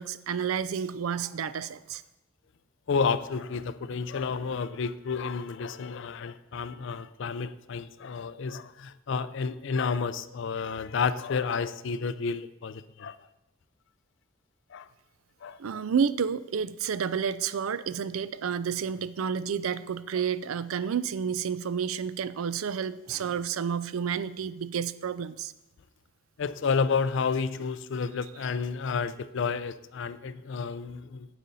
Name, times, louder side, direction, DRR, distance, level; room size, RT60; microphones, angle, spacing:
voice 1, 0.0-2.0 15.6-25.5, right 7 dB, 75° right, 15 dB, 0.4 m, -30 dB
voice 2, 2.9-13.1 14.7-14.8 15.4-15.6 26.4-31.3, left 5 dB, 60° left, 15 dB, 0.4 m, -30 dB
9.1 x 7.7 x 4.1 m, 0.94 s
head